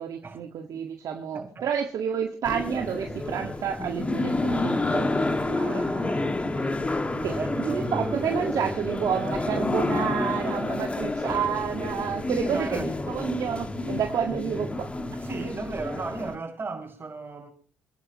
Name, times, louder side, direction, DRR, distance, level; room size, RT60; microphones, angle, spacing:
voice 1, 0.0-5.9 7.2-14.9, right 8 dB, 60° right, 1.9 m, -30 dB
voice 2, 1.3-1.7 5.5-6.3 7.2-7.9 11.2-11.4 12.3-12.8 15.2-17.5, right 4 dB, 30° right, 6.6 m, -36 dB
sound 1, 2.4-16.3, left 2 dB, 20° left, 2.1 m, -29 dB
28.5 x 11.5 x 3.1 m
supercardioid pair, 75°, 7 cm